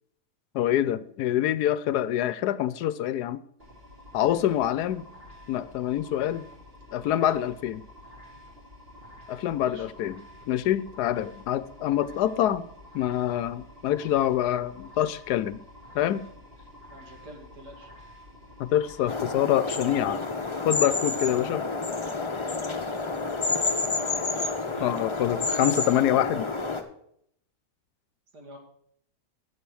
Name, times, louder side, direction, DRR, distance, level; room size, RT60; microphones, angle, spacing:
voice 1, 0.5-3.4 4.1-5.0 5.5-6.5 6.9-7.8 9.3-12.7 12.9-15.6 15.9-16.3 18.6-20.2 20.6-21.6 24.8-26.5, left 11 dB, 80° left, 17 dB, 1.1 m, -26 dB
sound 1, 3.6-19.2, left 1 dB, 35° right, 3.2 m, -49 dB
voice 2, 16.9-17.9 23.9-24.9 28.3-28.6, equal, 75° right, 3 dB, 2.8 m, -46 dB
sound 2, 19.1-26.8, left 3 dB, 20° left, 0.8 m, -29 dB
10.0 x 7.7 x 6.2 m, 0.68 s
omnidirectional pair, 1.8 m